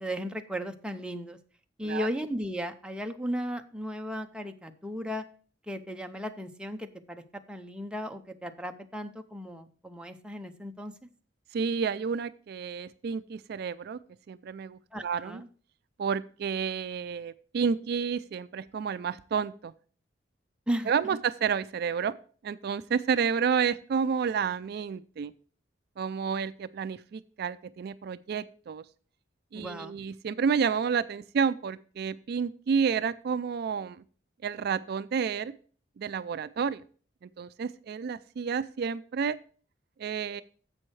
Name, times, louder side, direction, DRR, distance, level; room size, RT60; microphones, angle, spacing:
voice 1, 0.0-1.4 1.8-5.3 5.7-10.9 14.9-15.5 20.7-20.9 29.5-30.0, equal, 5° right, 5 dB, 0.7 m, -35 dB
voice 2, 11.5-14.0 14.3-15.4 16.0-19.7 20.9-22.1 22.4-25.3 26.0-28.8 29.5-34.0 34.4-35.5 36.0-36.8 37.4-39.4 40.0-40.4, right 6 dB, 60° right, 14 dB, 0.3 m, -30 dB
10.5 x 7.7 x 3.2 m, 0.41 s
head